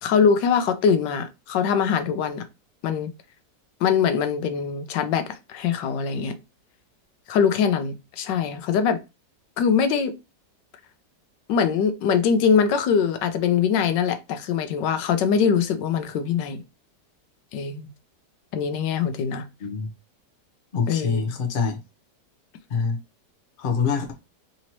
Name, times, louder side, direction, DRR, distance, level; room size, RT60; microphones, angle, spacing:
voice 1, 0.0-2.4 2.8-3.1 3.8-6.3 7.3-9.0 9.6-10.1 11.5-16.6 17.5-17.9 18.5-19.4 20.9-21.2, left 7 dB, 85° left, 1.3 m, -22 dB
voice 2, 20.7-21.8 22.7-23.0 23.6-24.1, left 5 dB, 45° left, 0.7 m, -25 dB
4.0 x 2.8 x 2.9 m
omnidirectional pair, 1.9 m